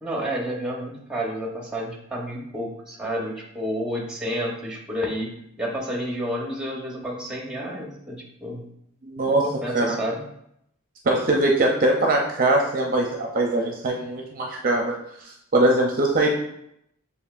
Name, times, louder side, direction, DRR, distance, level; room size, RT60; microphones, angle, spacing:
voice 1, 0.0-8.7 9.2-10.2, equal, 5° right, -1 dB, 0.8 m, -30 dB
voice 2, 9.0-9.4 9.7-9.9 11.0-14.9 15.5-16.3, right 2 dB, 40° right, 0 dB, 0.5 m, -21 dB
6.7 x 2.8 x 2.4 m, 0.76 s
head